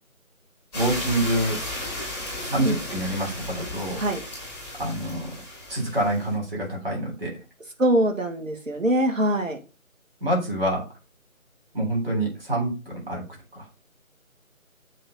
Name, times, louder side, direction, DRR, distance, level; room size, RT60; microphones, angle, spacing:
sound 1, 0.7-6.3, left 1 dB, 5° left, 1.6 m, -34 dB
voice 1, 0.7-1.6 2.4-4.0 4.8-5.3 5.7-7.3 10.2-10.8 11.7-13.2 13.5-13.7, right 1 dB, 40° right, -2 dB, 3.6 m, -26 dB
voice 2, 7.8-9.6, right 1 dB, 65° right, 4 dB, 1.8 m, -23 dB
7.6 x 3.5 x 4.1 m, 0.31 s
figure-of-eight pair, 165°, 42 cm